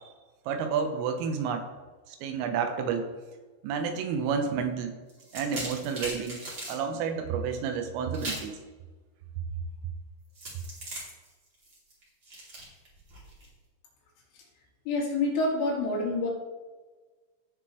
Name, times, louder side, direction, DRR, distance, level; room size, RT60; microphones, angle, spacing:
voice 1, 0.5-1.6 2.1-3.1 3.6-5.0 5.3-6.4 6.7-8.6, right 6 dB, 90° right, 5 dB, 3.5 m, -30 dB
sound 1, 5.1-6.8 8.1-8.5 10.3-13.5, right 1 dB, 30° right, 2.7 m, -39 dB
voice 2, 14.9-16.3, left 2 dB, 75° left, -3 dB, 4.6 m, -27 dB
17.0 x 6.2 x 3.2 m, 1.3 s
omnidirectional pair, 5.9 m